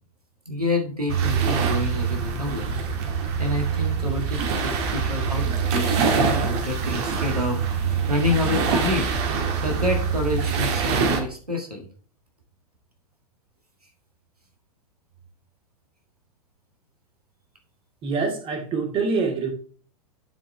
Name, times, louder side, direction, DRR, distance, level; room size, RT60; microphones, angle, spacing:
voice 1, 0.5-2.8 3.4-9.1 9.6-11.9, left 2 dB, 85° right, 2 dB, 1.8 m, -28 dB
sound 1, 1.1-11.2, right 6 dB, 45° right, 1.6 m, -24 dB
voice 2, 18.0-19.5, right 4 dB, 30° right, 3 dB, 1.9 m, -25 dB
11.5 x 4.3 x 3.3 m, 0.42 s
figure-of-eight pair, 100°, 19 cm